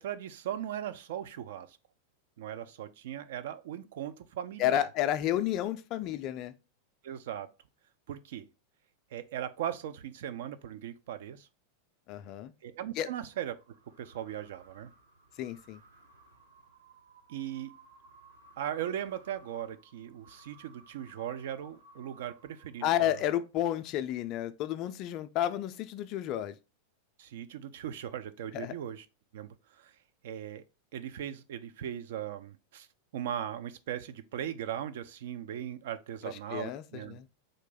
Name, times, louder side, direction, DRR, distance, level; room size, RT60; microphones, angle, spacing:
voice 1, 0.0-1.8 2.4-4.9 7.0-7.5 8.1-8.5 9.1-11.5 12.6-13.6 14.0-14.9 17.3-17.7 18.6-23.2 27.2-29.1 29.3-29.9 30.2-30.6 30.9-32.9 33.1-37.2, right 10 dB, 55° right, 0.4 m, -38 dB
voice 2, 4.6-6.5 12.1-12.5 13.0-13.1 15.4-15.8 22.8-26.6 28.5-28.7 36.3-37.3, left 12 dB, 40° left, 0.4 m, -31 dB
sound 1, 13.3-23.0, right 2 dB, 70° right, 0.9 m, -59 dB
3.7 x 2.6 x 3.8 m
figure-of-eight pair, 90°, 0 cm